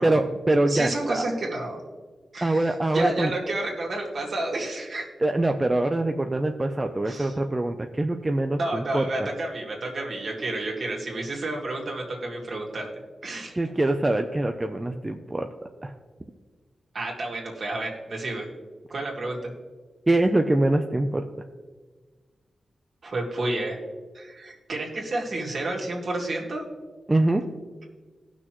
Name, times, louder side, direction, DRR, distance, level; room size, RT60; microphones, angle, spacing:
voice 1, 0.0-1.2 2.4-3.3 5.2-9.3 13.5-15.5 15.8-15.9 20.1-21.2 27.1-27.4, right 2 dB, 20° right, 4 dB, 0.5 m, -24 dB
voice 2, 0.7-1.8 2.3-5.1 7.0-7.3 8.6-12.9 13.2-13.6 16.9-18.5 18.9-19.5 23.0-23.8 24.1-26.6, right 2 dB, 55° right, -1 dB, 2.3 m, -30 dB
18.0 x 6.1 x 3.0 m, 1.4 s
wide cardioid pair, 110°, 0 cm